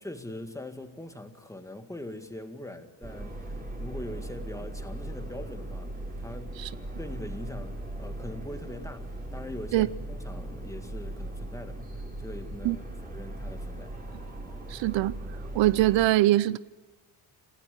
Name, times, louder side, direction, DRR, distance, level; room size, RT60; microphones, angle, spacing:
voice 1, 0.0-5.9 6.2-6.6 7.0-13.9, left 1 dB, 5° left, 1.9 m, -42 dB
sound 1, 3.0-16.1, right 1 dB, 20° right, 5.0 m, -38 dB
voice 2, 14.7-15.1 15.5-16.6, right 16 dB, 80° right, 0.7 m, -22 dB
27.5 x 15.0 x 8.2 m
cardioid pair, 105°, 44 cm